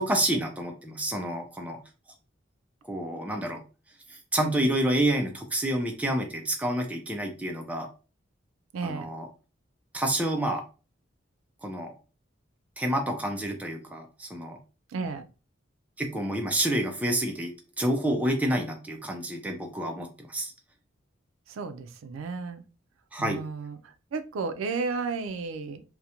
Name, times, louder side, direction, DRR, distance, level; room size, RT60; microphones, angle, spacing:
voice 1, 0.0-1.8 2.8-3.6 4.1-7.9 8.8-9.3 9.9-10.6 11.6-12.0 12.8-14.6 16.0-20.5 23.1-23.4, right 1 dB, 5° right, 2 dB, 0.3 m, -28 dB
voice 2, 8.7-9.1 14.9-15.3 21.5-22.6 23.2-25.8, right 4 dB, 85° right, 10 dB, 0.3 m, -33 dB
2.4 x 2.1 x 2.8 m, 0.33 s
head